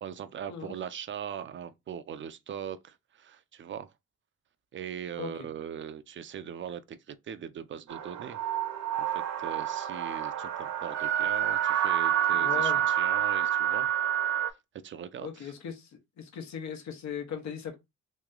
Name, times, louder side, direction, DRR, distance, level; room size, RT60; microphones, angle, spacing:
voice 1, 0.0-3.9 4.7-8.4 9.0-9.1 9.4-13.9 14.8-15.5, right 8 dB, 40° right, 0.5 m, -40 dB
voice 2, 5.1-5.5 12.3-12.9 15.2-15.9 16.2-17.7, left 7 dB, 65° left, 1.1 m, -38 dB
sound 1, 7.9-14.5, right 10 dB, 60° right, 0.8 m, -28 dB
3.1 x 2.8 x 3.6 m
cardioid pair, 90°, 30 cm